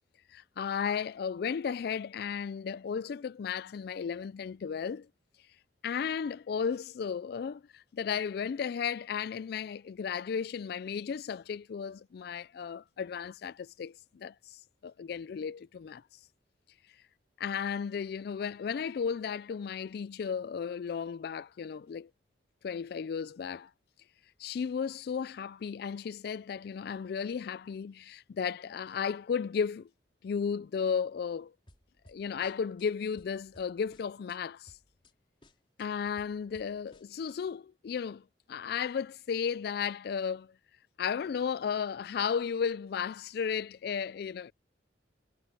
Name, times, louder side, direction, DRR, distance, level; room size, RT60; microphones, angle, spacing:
voice 1, 0.3-5.1 5.8-16.0 17.4-22.1 22.6-23.7 24.4-29.9 30.2-31.5 32.1-34.7 35.8-40.5 41.0-44.5, left 6 dB, 60° left, 0.3 m, -34 dB
sound 1, 31.7-32.9 33.2-34.4 34.7-35.1 35.4-37.4, left 1 dB, 30° left, 4.2 m, -60 dB
head